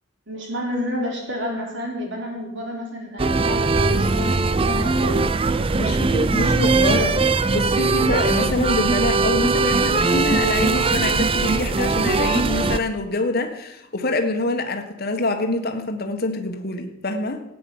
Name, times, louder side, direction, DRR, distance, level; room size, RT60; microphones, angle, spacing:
voice 1, 0.3-5.3, left 1 dB, 60° right, 1 dB, 3.7 m, -29 dB
sound 1, 3.2-12.8, right 3 dB, 25° right, 0.4 m, -20 dB
voice 2, 5.8-17.4, left 2 dB, 50° left, 5 dB, 1.5 m, -25 dB
13.5 x 9.4 x 7.3 m, 0.89 s
head